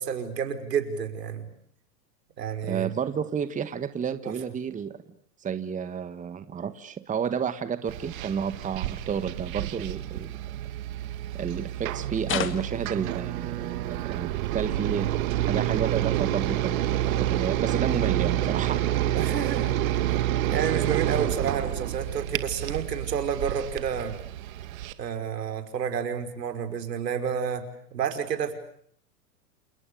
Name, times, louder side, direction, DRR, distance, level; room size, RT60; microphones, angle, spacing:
voice 1, 0.0-1.5 2.4-2.9 4.2-4.3 19.1-19.7 20.5-24.2 25.0-28.5, right 7 dB, 80° right, 9 dB, 5.6 m, -30 dB
voice 2, 2.6-5.0 5.4-10.3 11.3-19.1, right 7 dB, 15° right, 11 dB, 1.6 m, -31 dB
sound 1, 7.9-24.9, right 13 dB, 55° right, 2.5 m, -28 dB
sound 2, 12.3-12.9 16.1-16.2, left 10 dB, 25° left, 2.1 m, -30 dB
29.5 x 29.5 x 6.8 m, 0.64 s
hypercardioid pair, 120°, 48 cm